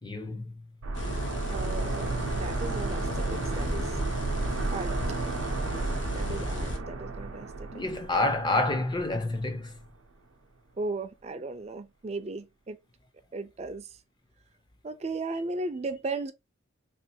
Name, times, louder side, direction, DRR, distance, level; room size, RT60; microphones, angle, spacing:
voice 1, 0.0-0.6 7.7-9.8, left 2 dB, 20° left, 0.5 m, -28 dB
sound 1, 0.8-9.5 9.8-9.9, right 3 dB, 85° right, 0.5 m, -33 dB
sound 2, 0.9-6.8, left 1 dB, 60° left, 0.7 m, -35 dB
voice 2, 1.5-4.0 4.7-5.0 5.7-7.8 10.8-12.8 13.3-13.9 14.8-16.3, right 3 dB, 30° right, 0.4 m, -36 dB
3.2 x 2.4 x 2.7 m
head